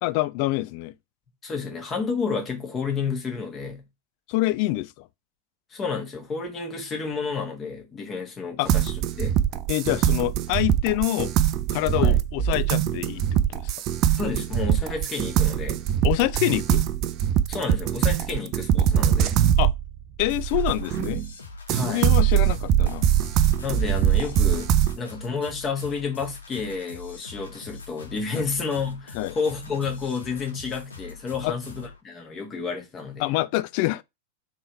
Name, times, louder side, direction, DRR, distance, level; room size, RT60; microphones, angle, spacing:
voice 1, 0.0-0.9 4.3-5.1 8.6-8.7 9.7-11.3 11.7-13.7 16.0-16.8 19.6-19.7 20.2-21.3 21.7-23.1 28.3-28.4 29.1-29.3 31.4-31.5 33.2-34.0, left 18 dB, 45° left, 0.3 m, -26 dB
voice 2, 1.4-3.8 5.7-9.4 11.9-12.2 14.1-15.8 17.5-19.3 21.7-22.1 23.6-24.7 24.9-33.3, left 5 dB, 25° left, 1.5 m, -30 dB
sound 1, 8.7-21.3 21.7-25.0, right 10 dB, 40° right, 0.4 m, -22 dB
sound 2, 20.3-32.0, left 3 dB, 75° left, 0.9 m, -42 dB
3.6 x 3.2 x 4.4 m
figure-of-eight pair, 90°, 0 cm